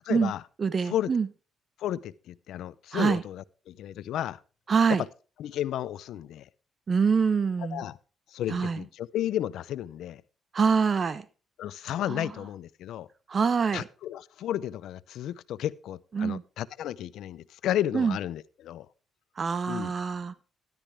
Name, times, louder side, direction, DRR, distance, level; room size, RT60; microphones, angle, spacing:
voice 1, 0.0-0.4 0.8-1.1 1.8-4.4 4.9-5.0 5.4-6.5 7.7-8.0 8.3-10.2 11.6-13.1 13.7-18.9 19.7-19.9, left 12 dB, 80° left, 0.6 m, -33 dB
voice 2, 0.6-1.3 2.9-3.2 4.7-5.0 6.9-7.8 8.5-8.8 10.5-11.2 12.1-12.3 13.3-13.8 16.1-16.4 17.9-18.2 19.4-20.4, right 5 dB, 40° right, 0.9 m, -25 dB
13.5 x 12.0 x 3.5 m
cardioid pair, 90°, 0 cm